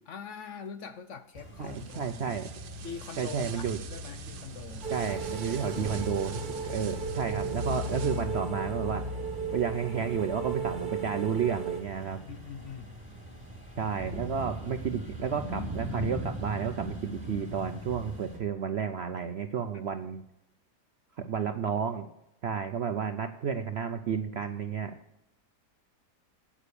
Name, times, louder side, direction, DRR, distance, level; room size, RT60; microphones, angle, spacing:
voice 1, 0.1-2.4 2.8-4.9 12.2-12.9 19.7-19.9, left 7 dB, 60° left, 10 dB, 0.8 m, -43 dB
sound 1, 1.3-18.4, left 1 dB, 10° right, 3.3 m, -39 dB
voice 2, 1.6-2.5 3.2-3.8 4.9-9.0 9.5-12.2 13.8-20.2 21.2-22.1 22.4-25.0, right 7 dB, 60° right, 7 dB, 0.6 m, -32 dB
sound 2, 1.6-8.5, right 9 dB, 80° right, 1.4 m, -47 dB
sound 3, 4.8-11.8, right 6 dB, 30° right, 1.7 m, -36 dB
9.7 x 8.7 x 6.8 m, 0.90 s
omnidirectional pair, 1.8 m